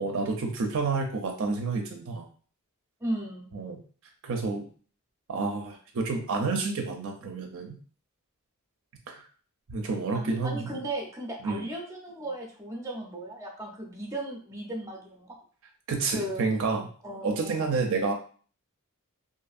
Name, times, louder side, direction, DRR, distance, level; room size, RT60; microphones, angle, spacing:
voice 1, 0.0-2.2 3.5-3.8 4.2-4.7 5.3-7.8 9.1-9.2 9.7-10.7 11.4-11.7 15.9-16.8 17.2-18.1, right 4 dB, 65° right, 2 dB, 0.5 m, -29 dB
voice 2, 3.0-3.5 10.1-15.4 16.1-16.5 17.0-17.7, right 1 dB, 15° right, -1 dB, 0.6 m, -36 dB
2.6 x 2.6 x 2.4 m, 0.43 s
head